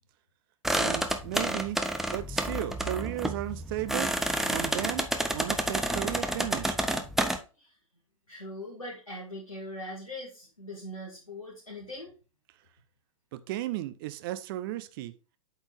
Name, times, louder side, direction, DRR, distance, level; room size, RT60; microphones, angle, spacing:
sound 1, 0.6-7.4, right 1 dB, ahead, 0.6 m, -30 dB
voice 1, 0.7-1.8 2.1-4.1 4.5-6.8 13.3-15.1, right 14 dB, 40° right, 0.6 m, -35 dB
voice 2, 8.3-12.1, left 1 dB, 85° left, 2.2 m, -41 dB
8.2 x 4.4 x 3.6 m
figure-of-eight pair, 100°, 17 cm